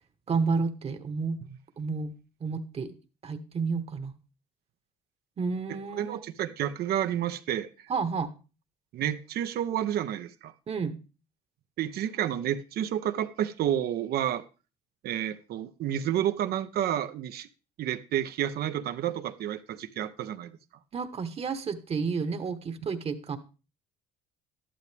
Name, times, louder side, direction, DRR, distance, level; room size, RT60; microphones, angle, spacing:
voice 1, 0.3-1.4 1.8-2.1 2.4-3.0 3.2-4.1 5.4-6.2 7.9-8.3 10.7-11.0 20.9-23.4, right 4 dB, 35° right, 9 dB, 1.2 m, -31 dB
voice 2, 6.0-7.7 8.9-10.5 11.8-14.4 15.0-17.5 17.8-20.5, right 11 dB, 65° right, 11 dB, 0.9 m, -30 dB
12.0 x 11.5 x 3.4 m, 0.33 s
cardioid pair, 110°, 17 cm